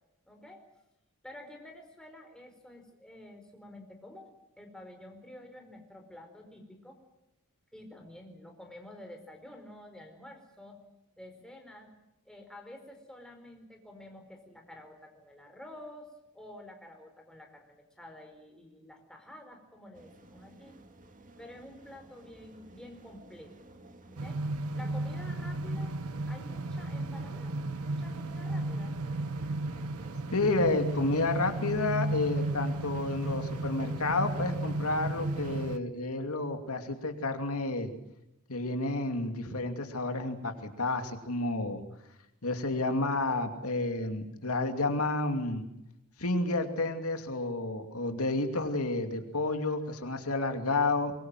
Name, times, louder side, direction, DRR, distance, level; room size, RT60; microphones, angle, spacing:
voice 1, 0.3-0.7 1.2-7.0 7.7-10.8 11.2-11.9 12.2-16.1 16.3-20.8 21.4-23.5 24.0-24.4 24.7-26.0 26.3-27.5 27.8-29.0, left 1 dB, 5° left, 3 dB, 4.7 m, -50 dB
sound 1, 19.9-35.6, right 2 dB, 35° right, 2.3 m, -51 dB
sound 2, 24.2-35.8, right 2 dB, 70° right, 0.9 m, -34 dB
voice 2, 30.3-37.9 38.5-41.8 42.4-45.6 46.2-51.1, left 2 dB, 75° left, 6 dB, 2.7 m, -30 dB
24.0 x 22.5 x 7.7 m, 0.91 s
head